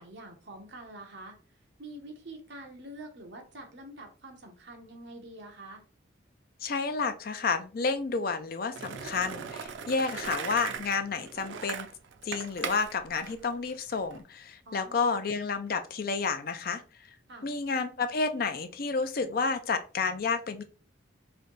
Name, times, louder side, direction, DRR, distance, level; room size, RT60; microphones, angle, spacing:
voice 1, 0.0-1.4 1.8-5.8 14.7-15.1 17.3-17.5, right 1 dB, 60° right, 2 dB, 1.0 m, -46 dB
voice 2, 6.6-11.9 12.2-16.8 17.4-20.6, left 4 dB, 50° left, 8 dB, 0.5 m, -30 dB
Skateboard, 8.7-14.2, right 6 dB, 80° right, 0.5 m, -39 dB
3.3 x 2.7 x 3.9 m, 0.36 s
head